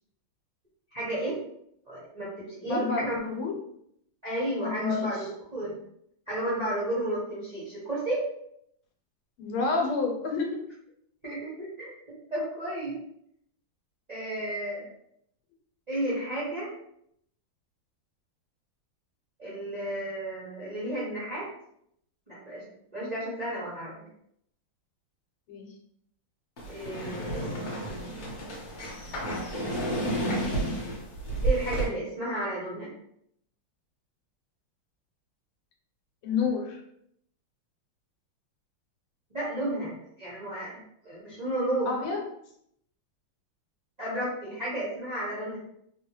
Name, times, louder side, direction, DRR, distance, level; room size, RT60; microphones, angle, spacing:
voice 1, 0.9-1.4 1.9-3.2 4.2-5.2 5.5-5.8 6.3-8.2 11.2-13.0 14.1-14.9 15.9-16.7 19.4-21.5 22.3-22.6 22.9-23.9 26.7-27.5 31.4-32.9 39.3-41.9 44.0-45.6, right 1 dB, 60° right, -8 dB, 0.4 m, -32 dB
voice 2, 2.6-3.6 4.6-5.3 9.4-10.6 25.5-25.7 36.2-36.8 41.9-42.3, left 4 dB, 85° left, 2 dB, 1.6 m, -29 dB
sound 1, 26.6-31.9, right 1 dB, 55° left, 1.2 m, -31 dB
3.4 x 2.2 x 2.9 m, 0.72 s
omnidirectional pair, 2.3 m